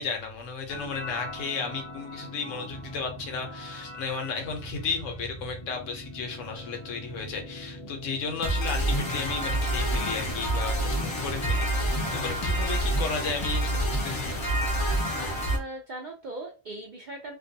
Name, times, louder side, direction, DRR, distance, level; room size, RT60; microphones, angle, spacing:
voice 1, 0.0-14.4, left 5 dB, 75° left, 1.0 m, -34 dB
sound 1, 0.7-15.6, right 1 dB, 40° left, 0.4 m, -30 dB
voice 2, 7.8-8.2 15.1-17.4, right 2 dB, 65° right, 0.4 m, -40 dB
2.5 x 2.2 x 2.6 m
omnidirectional pair, 1.3 m